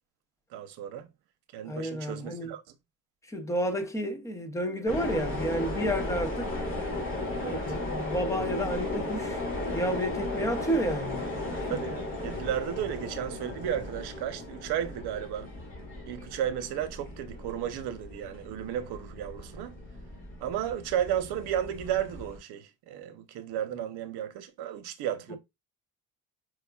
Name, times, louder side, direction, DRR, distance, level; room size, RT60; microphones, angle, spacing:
voice 1, 0.5-1.1 1.5-2.6 7.4-7.7 11.7-15.5 16.1-19.7 20.4-25.4, right 10 dB, 85° right, 0.7 m, -33 dB
voice 2, 1.7-2.5 3.3-6.5 7.5-9.4 9.7-11.2 11.6-11.7 25.3-25.4, equal, 10° left, 0.4 m, -31 dB
sound 1, 4.9-22.4, left 2 dB, 35° left, 2.0 m, -36 dB
sound 2, 8.5-14.2, right 6 dB, 50° right, 0.7 m, -53 dB
4.7 x 2.3 x 2.2 m
cardioid pair, 140°, 38 cm